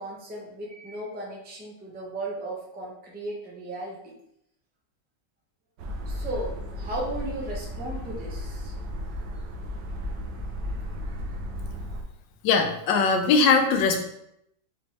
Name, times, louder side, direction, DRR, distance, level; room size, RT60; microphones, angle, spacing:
voice 1, 0.0-4.1 6.0-8.7 9.8-10.0 11.2-11.4, right 1 dB, 10° right, -4 dB, 0.5 m, -36 dB
sound 1, 5.8-12.0, equal, 80° right, 1.3 m, -34 dB
voice 2, 12.4-14.0, left 4 dB, 90° left, 5 dB, 1.3 m, -20 dB
5.2 x 2.9 x 3.1 m, 0.76 s
omnidirectional pair, 1.9 m